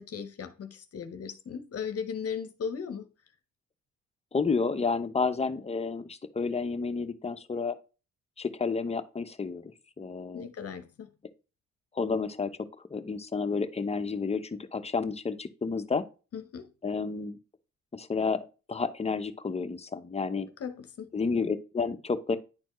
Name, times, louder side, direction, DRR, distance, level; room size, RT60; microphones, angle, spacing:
voice 1, 0.0-3.1 10.3-11.1 16.3-16.7 20.6-21.1, left 6 dB, 50° left, 0.9 m, -37 dB
voice 2, 4.3-7.8 8.4-10.5 11.9-12.5 12.9-16.0 16.8-17.4 17.9-20.5 21.1-22.4, left 4 dB, 20° left, 0.8 m, -31 dB
10.5 x 4.2 x 3.1 m
cardioid pair, 90°, 30 cm